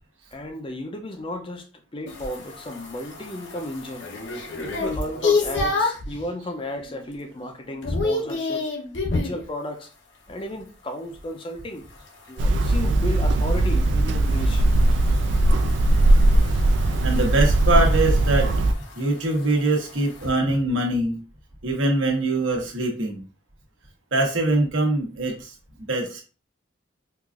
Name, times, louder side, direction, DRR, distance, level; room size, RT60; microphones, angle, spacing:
voice 1, 0.3-4.1 4.5-8.7 9.1-9.9 10.3-11.9 12.3-14.7 16.4-16.7, left 1 dB, 25° left, 0.5 m, -34 dB
sound 1, 2.1-6.1 6.6-7.0 7.3-9.4 11.9-20.3, left 3 dB, 65° left, 0.8 m, -30 dB
Hammer, 12.4-18.7, right 1 dB, 65° right, 0.3 m, -19 dB
voice 2, 17.0-18.5 18.9-21.2 21.6-23.2 24.1-25.5 25.9-26.2, right 2 dB, 80° right, 1.1 m, -23 dB
4.6 x 2.5 x 2.4 m
head